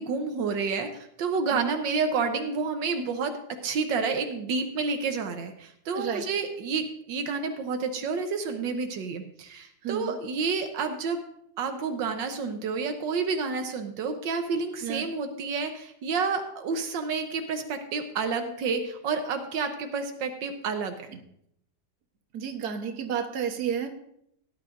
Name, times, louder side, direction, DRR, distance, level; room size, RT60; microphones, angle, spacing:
voice 1, 0.0-3.3 3.6-11.2 11.6-21.1, right 4 dB, 85° right, 6 dB, 1.6 m, -29 dB
voice 2, 9.8-10.1 14.8-15.0 22.3-23.9, right 8 dB, 60° right, 5 dB, 1.6 m, -31 dB
17.0 x 10.5 x 2.5 m, 0.74 s
omnidirectional pair, 1.9 m